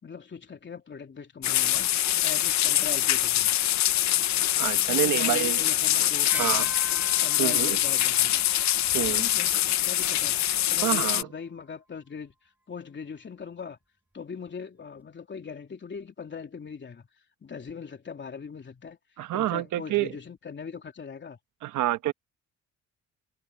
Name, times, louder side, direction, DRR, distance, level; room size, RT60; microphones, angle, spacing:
voice 1, 0.0-3.5 4.9-6.7 7.2-8.4 9.1-13.8 14.1-17.1 17.4-19.0 19.3-21.4, left 6 dB, 40° left, 3.1 m, -40 dB
sound 1, 1.4-11.2, left 12 dB, 65° left, 0.8 m, -24 dB
voice 2, 4.6-5.7 6.4-6.7 7.4-7.8 8.9-9.2 10.8-11.3 19.2-20.1 21.6-22.1, right 14 dB, 80° right, 1.2 m, -27 dB
sound 2, 6.2-10.0 11.1-11.2, right 1 dB, 5° right, 5.7 m, -43 dB
cardioid pair, 90°, 30 cm